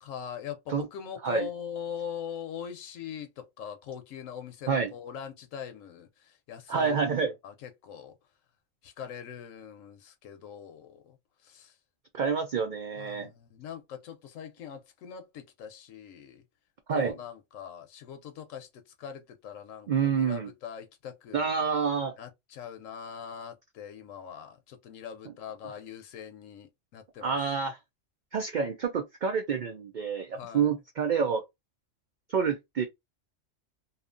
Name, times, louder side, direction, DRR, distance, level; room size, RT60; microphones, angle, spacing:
voice 1, 0.0-7.0 7.4-8.1 8.8-11.2 11.4-11.8 13.0-16.4 16.9-21.5 22.2-27.3 30.4-30.7, left 8 dB, 85° left, 1.0 m, -42 dB
voice 2, 6.7-7.3 12.1-13.3 16.9-17.2 19.9-20.5 21.3-22.1 27.2-27.8 28.3-31.4 32.3-32.9, right 6 dB, 80° right, 0.4 m, -28 dB
2.7 x 2.4 x 2.4 m
omnidirectional pair, 1.3 m